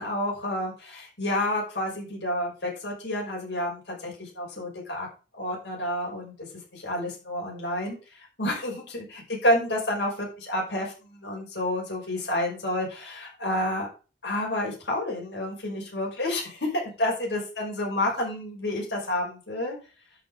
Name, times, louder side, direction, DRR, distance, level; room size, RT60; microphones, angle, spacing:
voice 1, 0.0-5.1 5.3-6.5 6.7-13.9 14.2-19.8, left 1 dB, 70° left, -3 dB, 6.0 m, -29 dB
11.0 x 7.3 x 5.6 m, 0.34 s
head